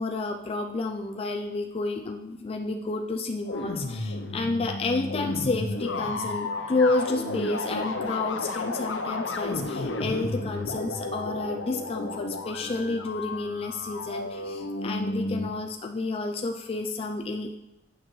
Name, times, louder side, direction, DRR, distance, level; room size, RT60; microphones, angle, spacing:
voice 1, 0.0-17.6, left 3 dB, 30° left, 3 dB, 0.4 m, -30 dB
sound 1, 3.4-15.5, left 2 dB, 85° left, 0.7 m, -32 dB
8.8 x 6.1 x 3.2 m, 0.99 s
head